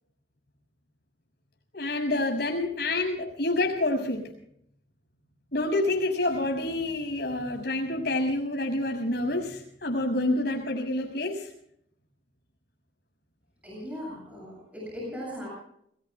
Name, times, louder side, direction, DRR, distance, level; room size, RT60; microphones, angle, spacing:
voice 1, 1.7-4.2 5.5-11.5, left 2 dB, 60° left, 2 dB, 6.4 m, -28 dB
voice 2, 13.6-15.6, equal, 10° right, -3 dB, 7.8 m, -38 dB
30.0 x 20.5 x 2.3 m, 0.69 s
head